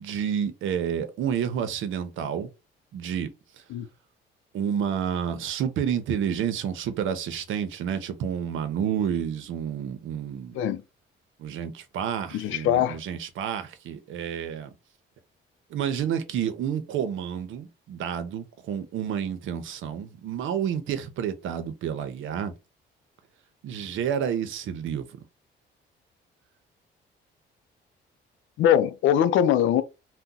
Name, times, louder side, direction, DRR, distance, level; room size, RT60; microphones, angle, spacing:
voice 1, 0.0-2.5 2.9-3.3 4.5-10.6 11.4-14.7 15.7-22.5 23.6-25.1, right 8 dB, 80° right, 0.7 m, -29 dB
voice 2, 12.3-13.0 28.6-29.8, left 10 dB, 85° left, 0.4 m, -22 dB
2.8 x 2.2 x 3.7 m
cardioid pair, 90°, 20 cm